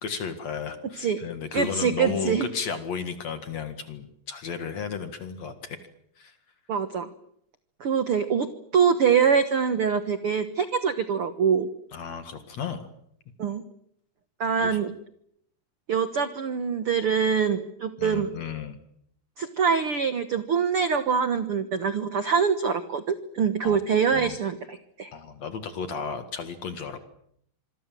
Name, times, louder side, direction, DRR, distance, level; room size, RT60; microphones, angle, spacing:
voice 1, 0.0-5.8 6.2-6.3 11.9-12.9 14.6-14.8 18.0-18.8 23.6-23.8 24.1-24.4 25.1-27.0, left 6 dB, 50° left, 9 dB, 2.6 m, -34 dB
voice 2, 1.5-2.5 6.7-7.1 7.8-8.5 8.7-11.7 13.4-13.6 14.4-14.9 15.9-18.3 19.4-25.1, right 6 dB, 80° right, 11 dB, 1.2 m, -24 dB
26.5 x 23.0 x 7.6 m, 0.72 s
omnidirectional pair, 4.5 m